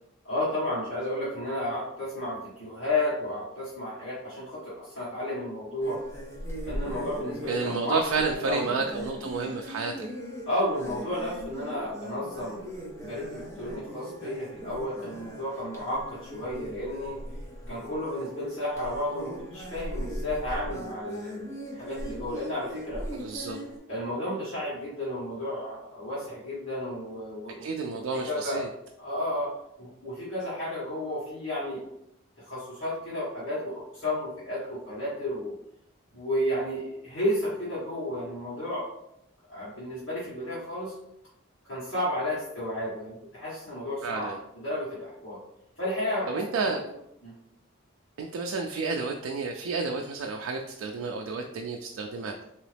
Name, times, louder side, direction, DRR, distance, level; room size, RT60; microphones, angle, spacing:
voice 1, 0.2-6.0 6.6-8.0 8.3-8.7 10.4-12.6 13.0-17.2 17.7-21.5 21.7-23.0 23.9-27.7 28.3-28.7 29.0-29.5 29.8-31.8 32.4-35.5 36.1-38.9 39.5-40.9 41.7-45.4 45.8-46.8 47.2-47.3, left 1 dB, 65° left, -10 dB, 1.5 m, -32 dB
sound 1, 5.8-23.8, equal, 15° left, 0.7 m, -39 dB
voice 2, 7.5-10.1 23.1-23.6 27.6-28.7 44.0-44.4 46.3-46.8 48.2-52.4, right 4 dB, 75° right, 2 dB, 0.4 m, -31 dB
3.8 x 3.0 x 3.3 m, 0.79 s
head